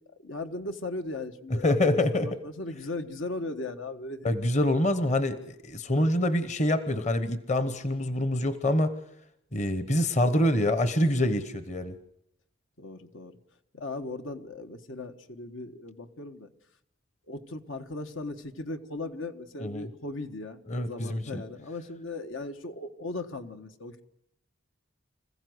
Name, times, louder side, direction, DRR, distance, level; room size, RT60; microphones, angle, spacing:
voice 1, 0.2-4.7 12.8-13.4 13.7-16.5 17.3-20.6 20.9-24.0, left 2 dB, 80° left, 7 dB, 1.4 m, -38 dB
voice 2, 1.6-2.3 4.2-8.9 9.5-12.0 19.6-19.9 20.7-21.4, left 1 dB, 35° left, 12 dB, 1.0 m, -26 dB
26.5 x 15.5 x 7.9 m, 0.81 s
head